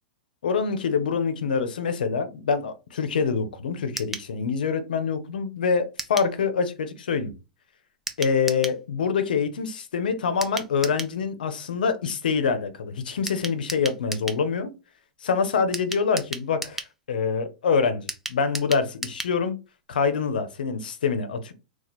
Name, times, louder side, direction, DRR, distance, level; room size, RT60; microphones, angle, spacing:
voice 1, 0.4-7.3 8.2-14.7 15.2-16.8 17.1-19.6 19.9-21.5, left 5 dB, 80° left, 0.6 m, -25 dB
sound 1, 4.0-4.3 6.0-6.3 8.1-8.8 10.4-11.2 13.3-14.4 15.7-16.9 18.1-19.4 19.7-19.8 20.0-20.1, right 2 dB, 5° right, 0.5 m, -34 dB
2.9 x 2.3 x 4.0 m
hypercardioid pair, 110°, 5 cm